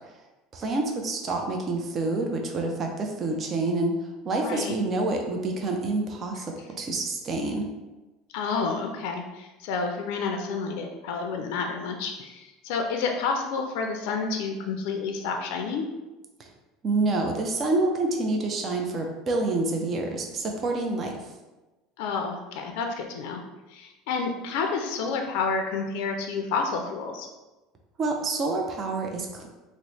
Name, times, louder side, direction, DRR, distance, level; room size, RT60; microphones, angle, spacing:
voice 1, 0.5-4.0 4.2-7.7 16.4-16.5 16.8-21.2 28.0-29.5, right 2 dB, 35° right, 2 dB, 0.4 m, -27 dB
voice 2, 4.4-4.8 8.3-15.9 22.0-23.4 23.7-27.3, left 4 dB, 75° left, 3 dB, 0.4 m, -30 dB
3.0 x 2.0 x 4.1 m, 1.1 s
supercardioid pair, 125°, 0 cm